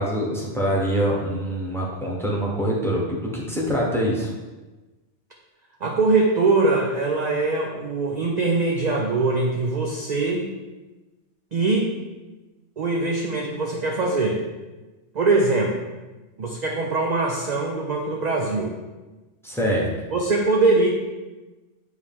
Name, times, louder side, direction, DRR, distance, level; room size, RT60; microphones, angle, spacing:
voice 1, 0.0-4.3 19.4-19.9, equal, ahead, -4 dB, 1.1 m, -24 dB
voice 2, 5.8-10.5 11.5-11.9 12.8-14.4 15.1-15.7 16.4-18.8 20.1-20.9, right 3 dB, 45° right, 0 dB, 0.6 m, -22 dB
9.1 x 3.2 x 3.6 m, 1.2 s
omnidirectional pair, 1.2 m